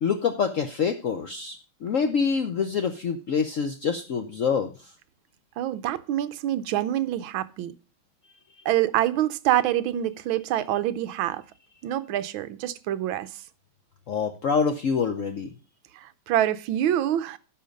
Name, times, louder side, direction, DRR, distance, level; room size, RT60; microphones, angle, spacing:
voice 1, 0.0-4.7 14.1-15.5, left 6 dB, 90° left, 0.6 m, -26 dB
voice 2, 5.6-7.7 8.6-11.4 11.8-13.3 15.9-17.4, right 12 dB, 75° right, 1.4 m, -26 dB
11.5 x 5.7 x 5.2 m
omnidirectional pair, 2.4 m